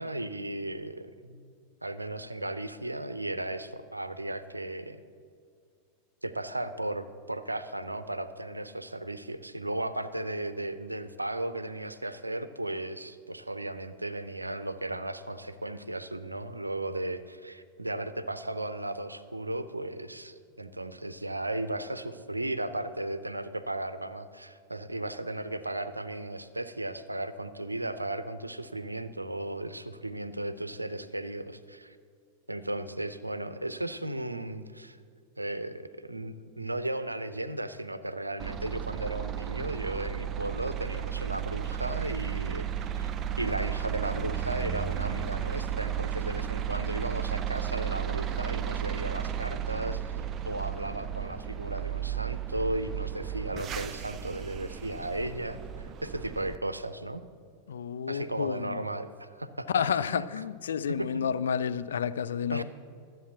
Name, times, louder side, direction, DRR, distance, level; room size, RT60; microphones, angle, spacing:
voice 1, 0.0-1.5 1.8-5.0 6.2-32.0 32.5-35.0 35.4-42.7 43.0-43.1 43.4-50.2 50.4-55.6 56.0-57.2 58.1-59.7 59.9-60.2 60.9-61.4 62.5-62.6, right 1 dB, 85° right, 0.6 m, -35 dB
sound 1, 38.4-56.6, right 9 dB, 30° right, 0.5 m, -34 dB
voice 2, 57.7-58.8 59.7-62.6, left 7 dB, 65° left, 0.4 m, -30 dB
13.0 x 7.7 x 7.9 m
figure-of-eight pair, 90°, 0 cm